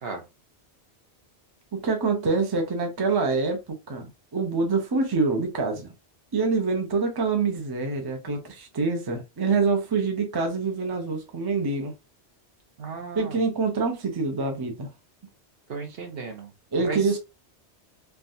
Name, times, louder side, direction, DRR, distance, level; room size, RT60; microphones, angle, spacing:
voice 1, 1.7-4.1 4.3-5.9 6.3-11.9 13.2-14.9 16.7-17.2, right 4 dB, 25° right, 0.6 m, -25 dB
voice 2, 12.8-13.4 15.7-16.5 16.9-17.2, right 4 dB, 65° right, 1.0 m, -35 dB
3.4 x 2.3 x 2.6 m
omnidirectional pair, 1.1 m